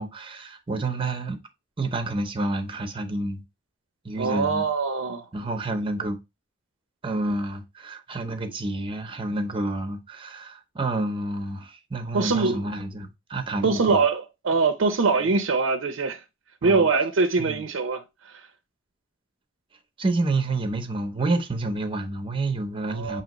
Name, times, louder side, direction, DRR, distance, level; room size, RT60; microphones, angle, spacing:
voice 1, 0.0-1.4 1.8-3.4 4.0-4.7 5.3-6.2 7.0-14.0 16.6-16.9 17.4-17.6 20.0-23.2, right 2 dB, 25° right, 0.7 m, -29 dB
voice 2, 4.2-5.3 12.1-12.6 13.6-16.2 16.6-18.4 22.9-23.2, right 4 dB, 75° right, 0.6 m, -23 dB
6.2 x 2.9 x 2.9 m
head